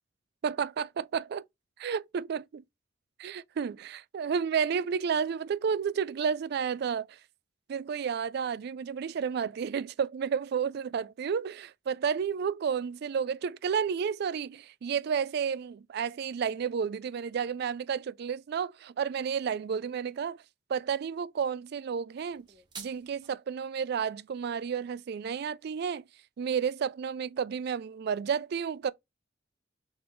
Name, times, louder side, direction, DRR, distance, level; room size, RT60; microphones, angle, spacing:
voice 1, 0.4-1.4 1.8-2.6 3.2-7.0 7.7-20.4 20.7-22.4 22.8-26.0 26.4-28.9, right 7 dB, 55° right, 0.3 m, -31 dB
sound 1, 22.3-23.3, right 5 dB, 25° right, 1.0 m, -47 dB
4.0 x 3.2 x 3.1 m
head